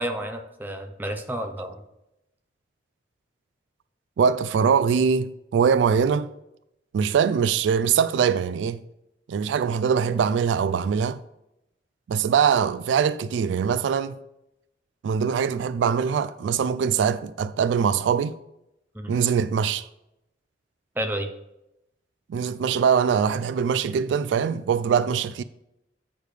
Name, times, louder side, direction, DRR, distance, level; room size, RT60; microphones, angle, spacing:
voice 1, 0.0-1.7 18.9-19.1 21.0-21.3, right 1 dB, 10° right, 0.7 m, -30 dB
voice 2, 4.2-6.3 6.9-8.8 9.3-11.2 12.1-14.2 15.0-18.4 19.1-19.9 22.3-25.4, right 7 dB, 80° right, 0.3 m, -22 dB
8.2 x 6.5 x 3.3 m
head